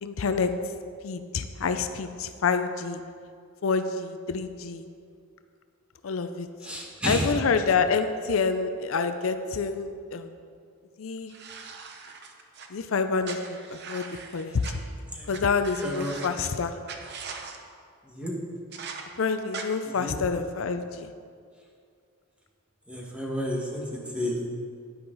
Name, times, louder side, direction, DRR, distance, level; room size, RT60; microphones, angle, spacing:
voice 1, 0.0-0.5 1.0-3.0 3.6-4.8 6.0-6.5 7.0-10.3 11.0-11.3 12.7-13.4 13.7-14.6 15.3-16.7 19.2-21.1, left 5 dB, 75° left, 9 dB, 0.5 m, -27 dB
voice 2, 6.6-7.3 14.5-14.7 15.1-15.5 15.8-16.1 18.0-18.3 19.8-20.1 22.9-24.4, equal, 5° right, -3 dB, 1.7 m, -32 dB
sound 1, 11.3-12.7 13.2-14.7 15.3-15.4 15.6-16.5 16.9-17.6 18.7-19.0 19.5-19.6, right 5 dB, 55° right, 0.9 m, -40 dB
10.5 x 10.0 x 4.0 m, 2.2 s
head